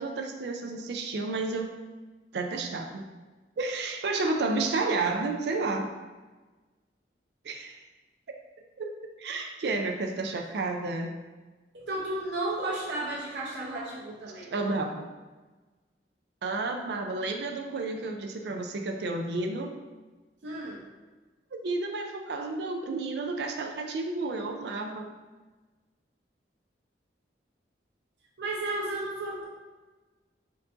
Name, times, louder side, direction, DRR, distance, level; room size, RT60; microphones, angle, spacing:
voice 1, 0.0-1.7 2.3-3.1 3.6-5.9 7.4-7.8 8.8-8.9 9.2-11.2 14.5-15.1 16.4-19.7 21.5-25.1, right 3 dB, 70° right, 4 dB, 0.4 m, -31 dB
voice 2, 11.7-14.5 20.4-20.8 28.4-29.4, right 2 dB, 90° right, -5 dB, 0.8 m, -33 dB
4.5 x 2.6 x 3.7 m, 1.2 s
head